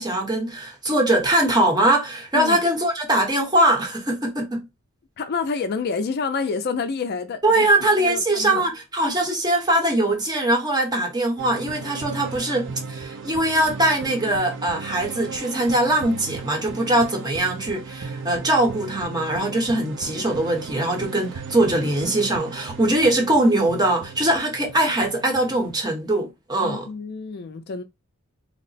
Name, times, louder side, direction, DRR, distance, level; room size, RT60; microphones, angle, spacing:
voice 1, 0.0-4.6 7.4-26.9, right 1 dB, 20° right, 0.9 m, -22 dB
voice 2, 5.2-7.7 8.0-8.7 26.6-27.8, left 5 dB, 50° left, 0.4 m, -28 dB
sound 1, 11.4-25.8, right 5 dB, 60° right, 0.5 m, -37 dB
2.9 x 2.1 x 4.0 m
head